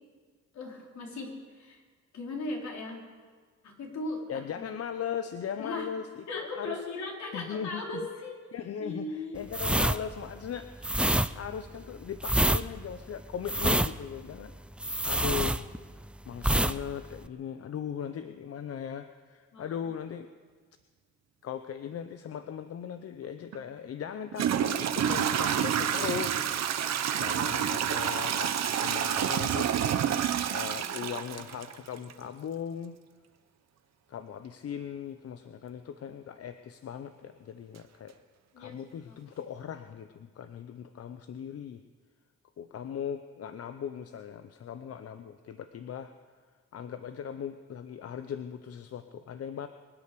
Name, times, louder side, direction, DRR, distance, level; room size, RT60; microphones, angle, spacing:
voice 1, 0.5-1.8 2.1-3.0 3.6-4.6 5.6-5.9 6.3-8.4 8.8-9.4 9.7-9.9 19.5-19.8 38.5-38.8 39.1-39.2, left 2 dB, 65° left, -1 dB, 3.9 m, -38 dB
voice 2, 4.3-6.0 6.3-6.8 7.3-7.8 8.5-10.9 11.4-14.5 14.8-15.7 16.3-20.3 21.4-26.3 27.2-30.0 30.5-33.0 34.1-38.1 38.6-41.8 42.6-46.1 46.7-49.7, left 8 dB, 50° left, 9 dB, 0.8 m, -38 dB
sound 1, 9.5-16.1 16.4-16.8 17.0-17.3, right 1 dB, 5° right, 0.4 m, -27 dB
Toilet flush / Trickle dribble, 23.5-23.6 24.3-32.1, right 9 dB, 60° right, 1.1 m, -28 dB
24.0 x 8.4 x 6.8 m, 1.5 s
cardioid pair, 90°, 30 cm